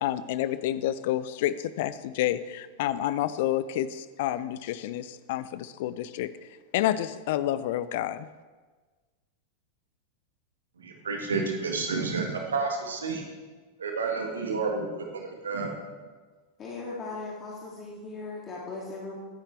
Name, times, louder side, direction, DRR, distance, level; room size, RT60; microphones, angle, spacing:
voice 1, 0.0-6.3 6.7-8.3, left 13 dB, 50° left, 15 dB, 0.6 m, -29 dB
voice 2, 10.8-13.2 13.8-15.7, right 4 dB, 70° right, 2 dB, 1.8 m, -30 dB
voice 3, 16.6-19.2, left 3 dB, 25° left, -4 dB, 2.7 m, -38 dB
25.0 x 10.0 x 3.4 m, 1.4 s
figure-of-eight pair, 90°, 0 cm